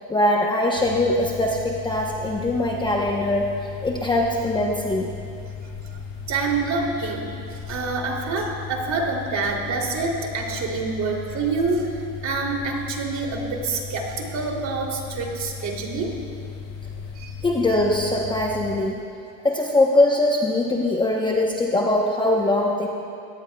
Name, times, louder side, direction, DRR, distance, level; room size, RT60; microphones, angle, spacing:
voice 1, 0.1-3.5 3.8-5.1 17.4-19.0 19.4-22.9, left 1 dB, 10° left, -1 dB, 0.9 m, -21 dB
sound 1, 0.8-18.8, left 6 dB, 50° left, 1.7 m, -36 dB
voice 2, 6.3-11.9 12.2-16.1 17.1-17.3, right 4 dB, 40° right, 0 dB, 2.9 m, -27 dB
22.5 x 18.0 x 2.3 m, 2.5 s
supercardioid pair, 125°, 42 cm